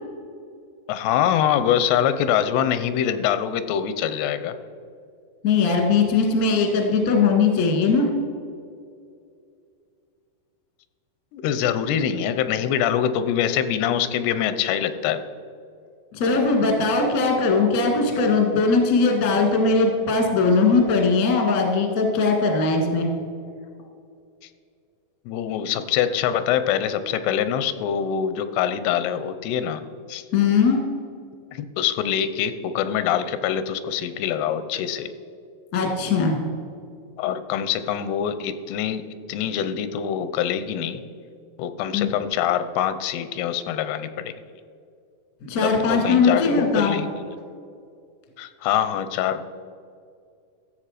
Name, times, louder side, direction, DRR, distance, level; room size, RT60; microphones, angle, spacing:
voice 1, 0.9-4.6 11.3-15.2 25.3-29.8 30.1-30.2 31.5-35.1 37.2-39.0 39.3-41.0 41.6-44.3 45.6-47.4 48.4-49.4, left 9 dB, 90° left, 12 dB, 2.8 m, -24 dB
voice 2, 5.4-8.1 16.1-23.1 30.3-30.8 35.7-36.4 41.9-42.1 45.4-47.0, left 4 dB, 40° left, 2 dB, 1.3 m, -20 dB
14.0 x 7.6 x 5.0 m, 2.3 s
omnidirectional pair, 4.6 m